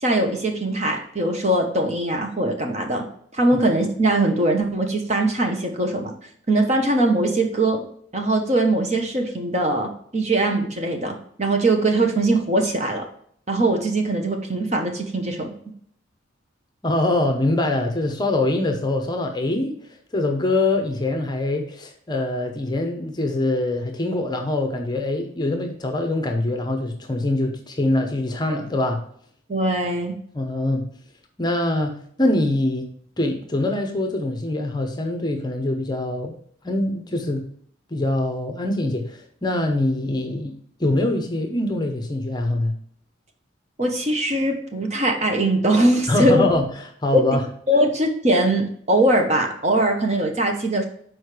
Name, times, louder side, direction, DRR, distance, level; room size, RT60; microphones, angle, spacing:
voice 1, 0.0-3.0 3.3-6.1 6.5-7.8 8.1-13.0 13.5-15.5 29.5-30.1 43.8-46.4 47.1-47.2 47.7-50.8, right 1 dB, 35° right, 3 dB, 1.0 m, -21 dB
voice 2, 16.8-29.0 30.3-30.8 31.4-32.9 33.2-36.4 36.6-37.4 37.9-40.5 40.8-42.7 46.1-46.7 47.0-47.4, left 2 dB, 20° left, 4 dB, 0.8 m, -23 dB
6.3 x 4.7 x 4.9 m, 0.62 s
head